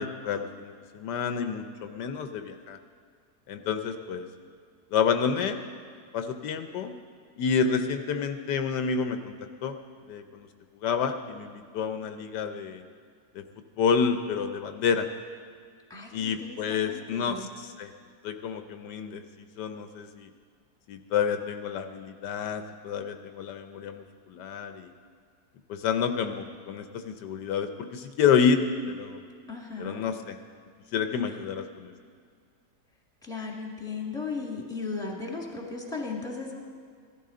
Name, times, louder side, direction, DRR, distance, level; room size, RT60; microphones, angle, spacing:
voice 1, 0.0-2.8 3.5-4.3 4.9-5.6 6.1-6.9 7.4-9.3 9.6-9.7 10.1-10.5 10.8-12.8 13.3-13.4 13.8-15.1 16.1-17.9 18.2-20.3 20.9-24.9 25.7-29.2 29.8-30.4 30.9-31.9, left 6 dB, 80° left, 7 dB, 1.3 m, -29 dB
voice 2, 15.9-17.5 29.5-30.0 33.2-36.6, left 4 dB, ahead, -1 dB, 1.6 m, -36 dB
16.5 x 12.5 x 3.8 m, 2.1 s
omnidirectional pair, 1.8 m